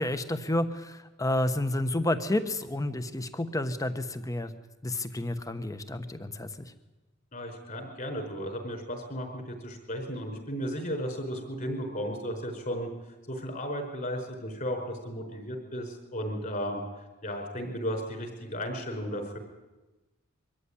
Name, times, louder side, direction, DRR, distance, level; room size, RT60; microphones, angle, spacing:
voice 1, 0.0-4.5 4.8-6.5, left 1 dB, 15° left, 10 dB, 1.1 m, -30 dB
voice 2, 7.3-12.9 13.3-16.8 17.2-19.4, equal, 40° left, 3 dB, 5.2 m, -34 dB
23.5 x 14.5 x 9.9 m, 1.1 s
head